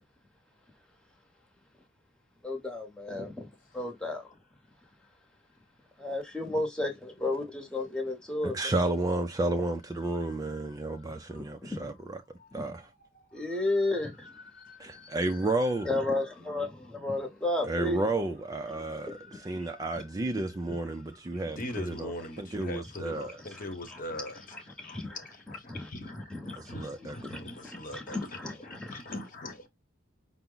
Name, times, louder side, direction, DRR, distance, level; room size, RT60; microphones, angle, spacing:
voice 1, 2.4-3.5 3.7-4.3 6.0-8.7 11.6-11.8 12.5-12.7 13.3-14.3 14.9-15.0 15.8-18.1 23.4-23.6 23.9-24.3 24.5-25.2 25.5-26.8 27.2-29.1, left 2 dB, 5° left, 0.9 m, -33 dB
voice 2, 8.4-12.9 14.8-15.9 17.6-23.6 26.6-27.4, right 2 dB, 15° right, 0.4 m, -32 dB
voice 3, 14.4-15.2 18.8-19.6 21.6-29.7, left 1 dB, 40° left, 1.0 m, -42 dB
5.6 x 2.0 x 3.8 m
head